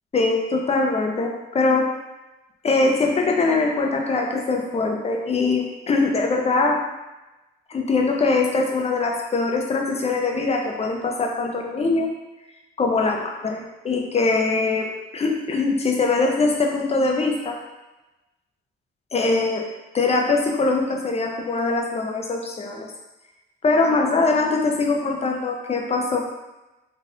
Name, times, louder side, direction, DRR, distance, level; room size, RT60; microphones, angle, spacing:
voice 1, 0.1-1.9 2.6-6.8 7.7-12.1 12.8-17.6 19.1-19.6 19.9-22.9 23.6-26.3, left 3 dB, 30° left, 1 dB, 0.6 m, -22 dB
4.1 x 2.6 x 2.5 m, 1.0 s
cardioid pair, 90°, 20 cm